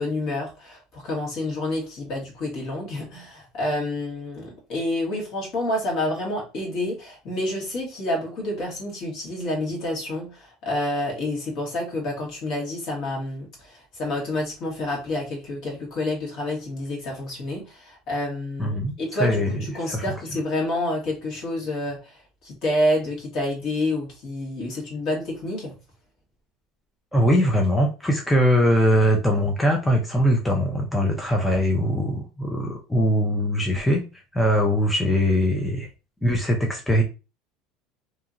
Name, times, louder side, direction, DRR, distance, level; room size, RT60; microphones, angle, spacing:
voice 1, 0.0-22.2 22.4-25.7, left 1 dB, 50° left, -1 dB, 1.4 m, -28 dB
voice 2, 18.6-20.0 27.1-35.9 36.2-37.0, equal, 5° left, 0 dB, 0.4 m, -22 dB
2.7 x 2.7 x 2.4 m, 0.31 s
cardioid pair, 145°, 0 cm